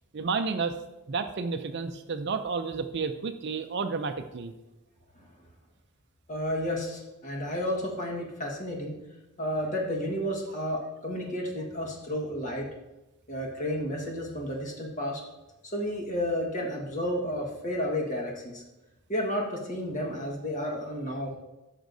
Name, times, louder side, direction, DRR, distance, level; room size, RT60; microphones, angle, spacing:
voice 1, 0.1-0.8 1.1-4.5, right 4 dB, 50° right, 8 dB, 0.5 m, -31 dB
voice 2, 6.3-9.0 9.4-12.7 13.3-15.2 15.7-18.6 19.1-21.3, equal, 35° left, -1 dB, 1.5 m, -31 dB
14.0 x 6.2 x 2.7 m, 1.0 s
head